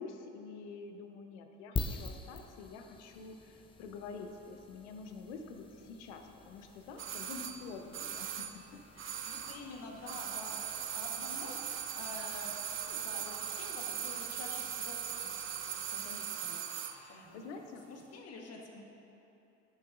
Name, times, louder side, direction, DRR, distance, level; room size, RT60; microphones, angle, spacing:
voice 1, 0.0-8.5 8.7-9.4 11.2-11.3 16.0-16.2 16.8-17.9, left 4 dB, 80° left, 5 dB, 0.7 m, -47 dB
sound 1, 1.8-16.5, left 4 dB, 15° left, 0.5 m, -47 dB
sound 2, 7.0-9.7 10.0-17.0 17.3-17.4, right 9 dB, 35° right, 0.6 m, -39 dB
voice 2, 9.2-10.6 10.9-11.6 11.9-16.6 17.1-17.5 17.9-18.9, left 3 dB, 45° left, 1 dB, 1.2 m, -48 dB
11.0 x 6.2 x 2.5 m, 3.0 s
hypercardioid pair, 75°, 34 cm